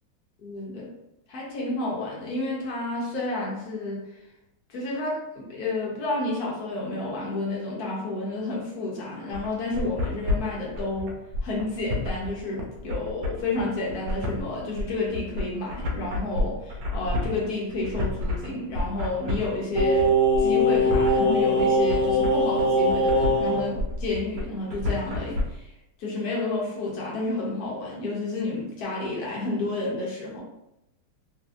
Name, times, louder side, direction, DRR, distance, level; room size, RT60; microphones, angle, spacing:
voice 1, 0.4-0.9 1.3-4.1 4.7-11.1 11.4-20.1 20.4-25.7 26.0-30.4, left 2 dB, 60° left, -4 dB, 1.0 m, -30 dB
sound 1, 9.3-25.4, left 2 dB, 70° right, 1.2 m, -30 dB
Singing, 19.7-23.6 23.9-24.0, equal, 20° right, 0.7 m, -21 dB
3.2 x 2.6 x 2.3 m, 0.87 s
omnidirectional pair, 2.2 m